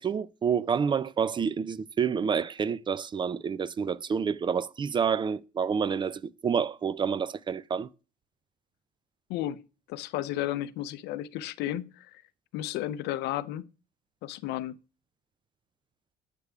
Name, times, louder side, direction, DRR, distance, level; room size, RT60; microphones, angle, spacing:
voice 1, 0.0-7.9, right 6 dB, 30° right, 0.4 m, -28 dB
voice 2, 9.3-9.6 9.9-12.2 12.5-13.7 14.2-14.8, left 13 dB, 85° left, 0.5 m, -33 dB
8.2 x 3.4 x 4.8 m
cardioid pair, 110°, 17 cm